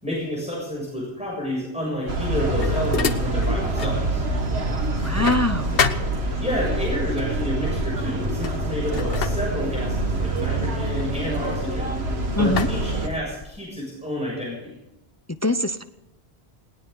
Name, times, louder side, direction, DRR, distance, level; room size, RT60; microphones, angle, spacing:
voice 1, 0.0-4.2 6.4-12.0 12.4-14.8, equal, 5° right, -5 dB, 6.9 m, -30 dB
sound 1, 2.0-4.0 4.4-6.7 7.6-7.8 8.2-12.0 12.6-13.7, left 6 dB, 60° left, 1.1 m, -30 dB
sound 2, 2.1-13.1, right 2 dB, 70° right, 2.1 m, -26 dB
voice 2, 5.0-5.8 12.4-12.7 15.4-15.8, left 2 dB, 20° left, 10 dB, 0.4 m, -22 dB
20.0 x 18.5 x 3.9 m, 0.92 s
omnidirectional pair, 1.1 m